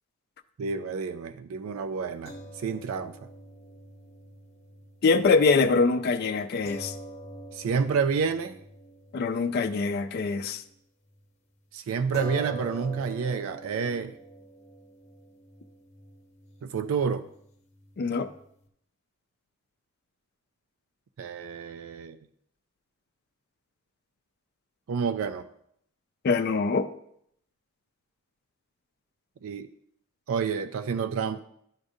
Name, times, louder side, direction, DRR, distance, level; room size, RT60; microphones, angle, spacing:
voice 1, 0.6-3.2 7.5-8.6 11.7-14.2 16.6-17.2 21.2-22.2 24.9-25.5 29.4-29.7 30.3-31.4, right 6 dB, 85° right, 11 dB, 0.4 m, -29 dB
sound 1, 2.3-10.8 11.1-11.2 12.1-18.7, equal, 35° left, 0.8 m, -45 dB
voice 2, 5.0-6.9 9.1-10.6 18.0-18.3 26.2-26.9, left 4 dB, 50° left, 6 dB, 0.4 m, -24 dB
12.0 x 4.9 x 2.7 m, 0.71 s
head